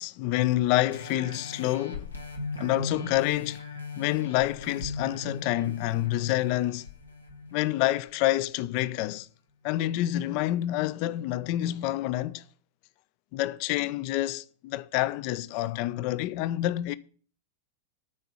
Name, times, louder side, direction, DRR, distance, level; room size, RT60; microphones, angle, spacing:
voice 1, 0.0-2.1 2.6-3.7 4.0-6.8 7.5-9.3 9.6-12.4 13.3-16.9, left 15 dB, 45° left, 0.4 m, -28 dB
sound 1, 0.9-8.1 8.6-8.7, left 3 dB, 85° left, 1.4 m, -39 dB
9.6 x 4.5 x 7.0 m
figure-of-eight pair, 90°, 0 cm